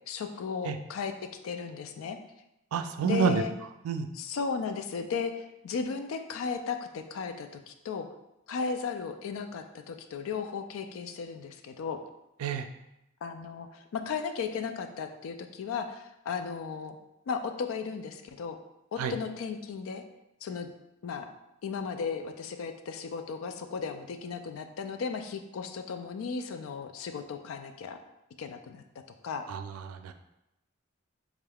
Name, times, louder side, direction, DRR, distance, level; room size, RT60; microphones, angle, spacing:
voice 1, 0.1-1.1 1.4-2.2 3.0-3.5 4.2-8.1 8.5-12.0 13.2-17.0 17.3-18.6 18.9-20.0 20.4-20.7 21.0-21.3 21.6-28.0 28.4-28.8 29.2-29.5, left 5 dB, 70° left, 7 dB, 0.3 m, -35 dB
voice 2, 2.7-3.4 3.8-4.1 12.4-12.7 19.0-19.1 29.5-30.1, right 7 dB, 85° right, 7 dB, 0.3 m, -29 dB
3.5 x 3.4 x 2.3 m, 0.89 s
head